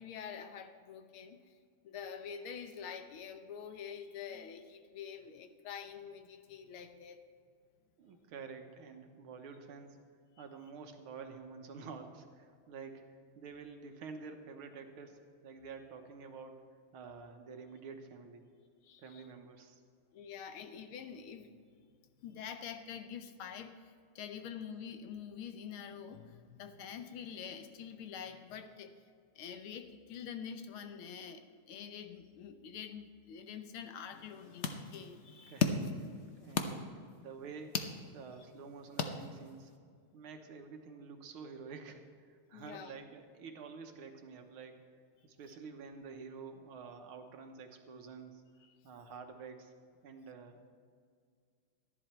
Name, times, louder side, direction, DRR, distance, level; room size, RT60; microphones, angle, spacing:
voice 1, 0.0-1.4 1.8-7.2 18.8-19.2 20.1-21.6 22.2-29.0 29.4-35.6 42.5-42.9 48.6-48.8, left 7 dB, 85° left, 8 dB, 1.7 m, -46 dB
voice 2, 8.0-10.0 10.4-16.7 16.9-18.6 19.0-19.8 35.5-37.9 38.1-39.7 40.1-44.9 45.2-48.4 48.8-49.7 50.0-50.7, right 5 dB, 85° right, 5 dB, 2.0 m, -49 dB
sound 1, 34.1-39.8, left 5 dB, 65° left, 0.7 m, -38 dB
13.5 x 11.0 x 4.4 m, 2.1 s
omnidirectional pair, 2.3 m